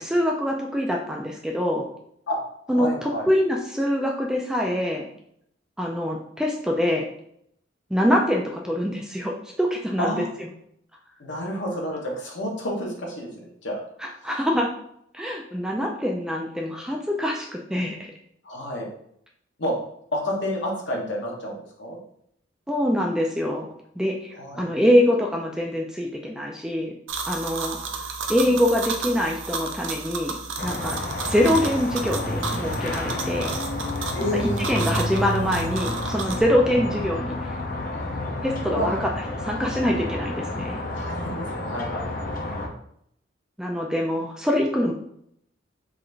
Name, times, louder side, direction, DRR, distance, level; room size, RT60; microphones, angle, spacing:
voice 1, 0.0-1.9 2.7-5.1 5.8-7.0 7.9-10.1 14.2-14.7 15.1-18.1 22.7-23.7 24.0-26.9 27.3-27.8 28.3-31.0 31.3-33.6 34.3-37.5 38.4-39.1 39.4-40.8 43.6-44.9, equal, 5° right, -1 dB, 0.3 m, -24 dB
voice 2, 2.7-3.3 10.0-10.3 11.2-13.9 18.4-18.9 19.6-19.8 20.1-22.0 24.3-24.7 34.1-34.6 38.7-39.0 40.9-42.1, equal, 65° left, -1 dB, 0.9 m, -29 dB
sound 1, 27.1-36.4, right 4 dB, 75° right, 0.5 m, -33 dB
sound 2, 30.6-42.7, left 1 dB, 45° left, 0.5 m, -30 dB
3.7 x 2.5 x 3.2 m, 0.70 s
head